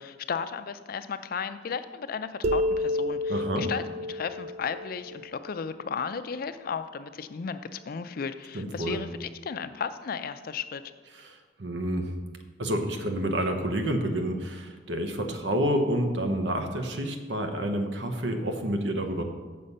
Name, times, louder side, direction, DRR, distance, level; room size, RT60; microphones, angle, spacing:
voice 1, 0.0-10.8, left 6 dB, 55° left, 11 dB, 0.4 m, -34 dB
sound 1, 2.4-6.0, left 1 dB, 40° right, 0.3 m, -30 dB
voice 2, 3.3-3.7 8.5-9.0 11.1-12.1 12.6-19.2, right 1 dB, 85° right, 6 dB, 1.0 m, -29 dB
6.9 x 6.5 x 5.5 m, 1.4 s
head